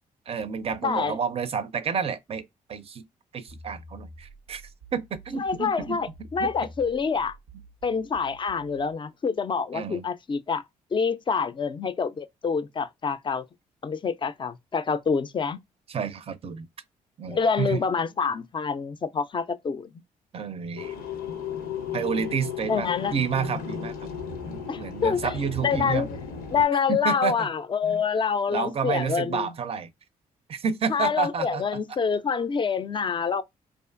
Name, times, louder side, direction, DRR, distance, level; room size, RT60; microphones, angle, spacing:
voice 1, 0.3-3.0 3.3-4.6 4.9-6.0 6.4-6.5 9.7-10.0 15.9-16.7 17.2-17.8 20.3-20.9 21.9-24.1 24.5-26.1 26.9-27.5 27.9-28.0 28.5-29.9 30.5-31.6, right 6 dB, 40° right, 0.4 m, -30 dB
voice 2, 0.8-1.2 5.4-7.4 7.8-10.6 10.9-13.5 13.8-15.6 17.3-19.9 22.7-23.2 24.7-26.1 26.5-29.5 30.9-33.4, left 6 dB, 30° left, 0.3 m, -26 dB
sound 1, 3.5-8.9, right 2 dB, 90° right, 0.5 m, -48 dB
sound 2, 20.8-26.6, left 6 dB, 85° left, 0.6 m, -35 dB
2.4 x 2.4 x 2.4 m
supercardioid pair, 55°, 16 cm